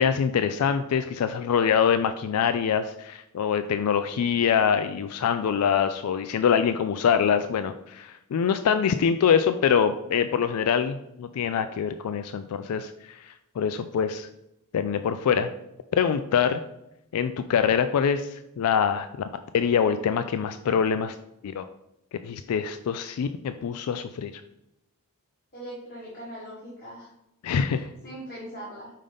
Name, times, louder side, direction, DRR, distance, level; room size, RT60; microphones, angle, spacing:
voice 1, 0.0-14.3 14.7-15.5 15.9-16.6 17.1-19.1 19.5-21.1 21.4-21.6 22.2-24.3 27.4-27.9, left 7 dB, 80° left, 10 dB, 0.3 m, -24 dB
voice 2, 25.5-27.1 27.6-28.9, right 1 dB, 40° left, -7 dB, 1.6 m, -41 dB
5.5 x 5.3 x 3.4 m, 0.86 s
head